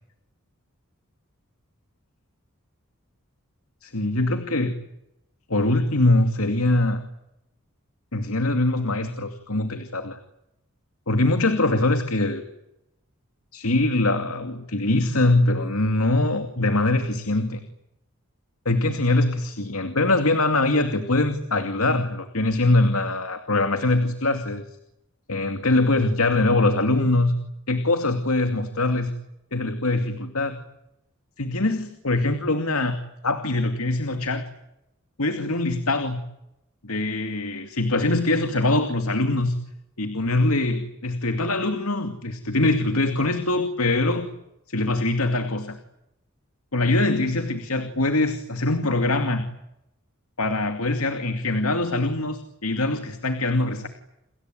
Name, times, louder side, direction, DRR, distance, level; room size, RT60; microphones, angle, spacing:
voice 1, 3.8-4.7 5.5-7.0 8.1-10.2 11.1-12.4 13.5-17.6 18.7-24.7 25.3-27.3 27.7-29.1 29.5-30.6 31.4-33.0 33.2-34.4 35.2-36.2 36.8-39.6 40.0-44.3 44.7-45.8 46.7-49.5 50.4-53.9, left 2 dB, 85° left, 7 dB, 2.5 m, -23 dB
29.5 x 21.5 x 9.3 m, 0.85 s
head